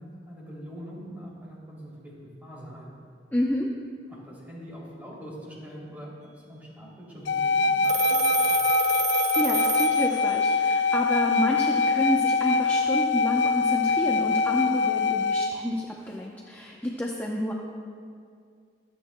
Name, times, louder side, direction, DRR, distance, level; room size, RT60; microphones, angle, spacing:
voice 1, 0.0-2.9 4.1-6.1 6.5-8.7, equal, 10° right, -5 dB, 2.7 m, -43 dB
voice 2, 3.3-3.7 9.4-17.5, left 1 dB, 10° left, -2 dB, 0.6 m, -29 dB
sound 1, 7.3-15.5, left 4 dB, 85° left, 0.4 m, -23 dB
Telephone, 7.8-10.6, right 6 dB, 35° right, 0.4 m, -31 dB
24.0 x 8.8 x 2.2 m, 2.2 s
head